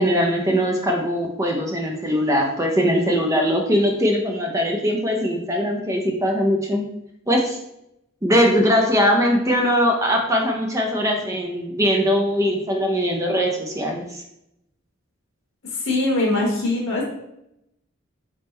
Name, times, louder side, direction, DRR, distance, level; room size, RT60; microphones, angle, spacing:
voice 1, 0.0-6.8 7.3-7.6 8.2-14.2, equal, 15° right, 1 dB, 0.5 m, -21 dB
voice 2, 15.8-17.0, left 2 dB, 75° left, -2 dB, 1.1 m, -21 dB
3.5 x 3.1 x 4.3 m, 0.82 s
head